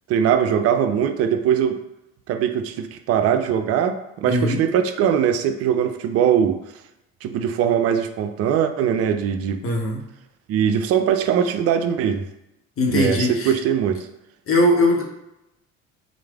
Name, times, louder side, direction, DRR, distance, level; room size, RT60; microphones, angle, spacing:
voice 1, 0.1-1.8 2.3-6.6 7.2-9.6 10.5-12.2 12.9-14.1, right 8 dB, 40° right, 8 dB, 0.4 m, -21 dB
voice 2, 4.3-4.6 9.6-10.0 12.8-13.6 14.5-15.0, left 1 dB, 35° left, 0 dB, 0.8 m, -20 dB
3.1 x 2.0 x 3.4 m, 0.88 s
figure-of-eight pair, 55°, 39 cm